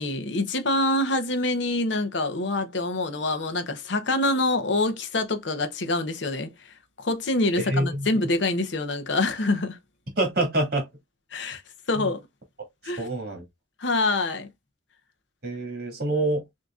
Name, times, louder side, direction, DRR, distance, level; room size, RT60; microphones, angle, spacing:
voice 1, 0.0-6.5 7.0-9.8 11.3-11.6 11.9-12.2 12.8-13.1 13.8-14.5, left 2 dB, 75° left, 0.8 m, -25 dB
voice 2, 7.6-8.1 10.2-10.9 12.0-12.1 13.0-13.4 15.4-16.4, right 1 dB, 55° right, 2.2 m, -26 dB
6.2 x 2.8 x 2.4 m
head